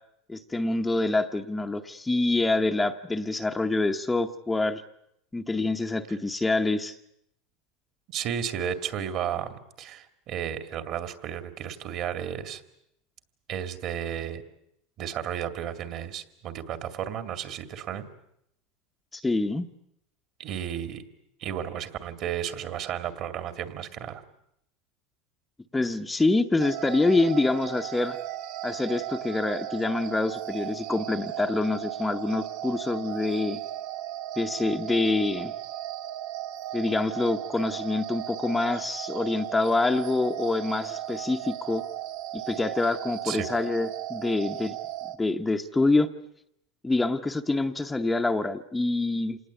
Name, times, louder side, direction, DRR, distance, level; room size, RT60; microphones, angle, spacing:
voice 1, 0.3-4.8 5.3-7.0 19.1-19.7 25.7-28.2 28.6-33.6 34.4-35.5 36.7-41.8 42.3-44.8 45.2-46.1 46.8-49.4, left 2 dB, 10° left, 5 dB, 0.9 m, -26 dB
voice 2, 8.1-12.6 13.5-14.4 15.0-18.0 20.4-21.0 21.4-24.2 43.2-43.5, right 9 dB, 45° right, 8 dB, 2.2 m, -33 dB
sound 1, 26.6-45.2, right 12 dB, 65° right, 1.6 m, -36 dB
27.0 x 19.0 x 8.3 m, 0.76 s
supercardioid pair, 135°, 0 cm